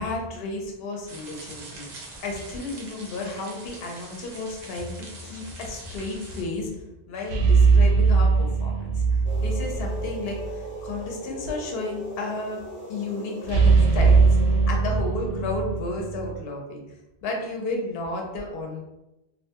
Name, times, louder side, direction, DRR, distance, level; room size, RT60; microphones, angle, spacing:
voice 1, 0.0-1.9 2.2-12.6 12.9-16.8 17.2-18.8, left 2 dB, 65° left, 0 dB, 0.8 m, -32 dB
sound 1, 1.1-6.4, right 2 dB, 50° right, 0.6 m, -43 dB
sound 2, 7.3-10.6 10.8-11.0 13.5-16.4, right 4 dB, 75° right, 0.8 m, -20 dB
sound 3, 9.2-14.8, equal, 15° left, 0.4 m, -38 dB
2.7 x 2.2 x 2.7 m, 0.93 s
omnidirectional pair, 1.1 m